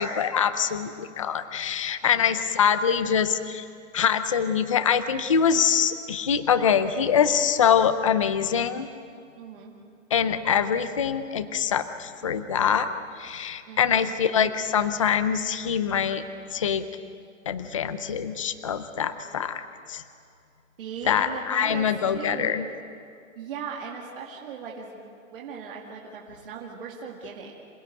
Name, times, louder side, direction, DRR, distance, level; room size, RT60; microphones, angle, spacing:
voice 1, 0.0-3.7 3.9-8.9 10.1-12.9 13.2-16.2 16.5-16.8 17.5-20.0 21.1-22.6, left 7 dB, 25° left, 11 dB, 0.5 m, -24 dB
voice 2, 2.0-2.3 9.4-9.8 13.7-14.1 20.8-22.6 23.4-25.0 25.3-27.5, right 6 dB, 40° right, -2 dB, 2.3 m, -38 dB
27.0 x 17.0 x 9.3 m, 2.4 s
hypercardioid pair, 180°, 40 cm